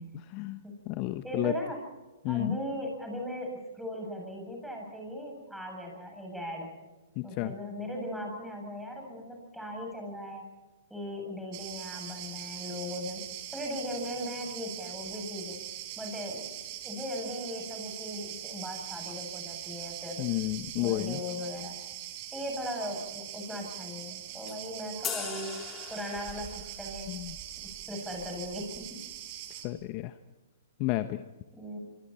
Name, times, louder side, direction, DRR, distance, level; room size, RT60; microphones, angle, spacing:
voice 1, 0.0-0.6 0.9-1.5 2.2-2.6 7.2-7.5 20.2-21.2 27.1-27.4 29.6-30.1 30.8-31.2, left 16 dB, 35° left, 10 dB, 1.1 m, -31 dB
voice 2, 1.2-1.8 2.3-6.7 7.2-10.4 10.9-13.2 13.5-15.6 16.0-16.4 16.8-20.3 20.8-21.7 22.3-25.6 25.9-27.1 27.9-29.0 31.5-31.8, left 1 dB, ahead, 1 dB, 8.0 m, -38 dB
Cricket, 11.5-29.7, right 12 dB, 40° right, 3.9 m, -42 dB
sound 1, 25.0-26.7, left 8 dB, 20° left, 3.7 m, -38 dB
25.5 x 24.5 x 4.4 m, 1.1 s
hypercardioid pair, 145°, 0 cm